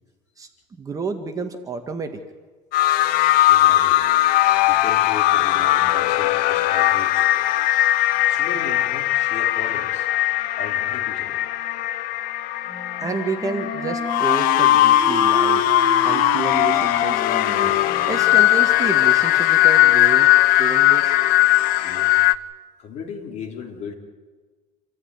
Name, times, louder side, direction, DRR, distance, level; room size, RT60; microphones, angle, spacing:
voice 1, 0.4-2.2 13.0-15.6 16.0-17.7 18.1-20.3 20.6-21.2, right 4 dB, 20° right, 6 dB, 1.8 m, -30 dB
sound 1, 2.7-22.4, left 15 dB, 60° left, 0.9 m, -19 dB
voice 2, 3.5-4.0 4.7-7.3 8.3-10.1 10.6-11.4 21.8-22.3 22.8-23.9, left 5 dB, 45° left, 2 dB, 4.2 m, -36 dB
Wind instrument woodwind instrument, 12.7-18.3, equal, 25° left, 6.8 m, -30 dB
28.0 x 14.5 x 9.6 m, 1.4 s
cardioid pair, 145°, 16 cm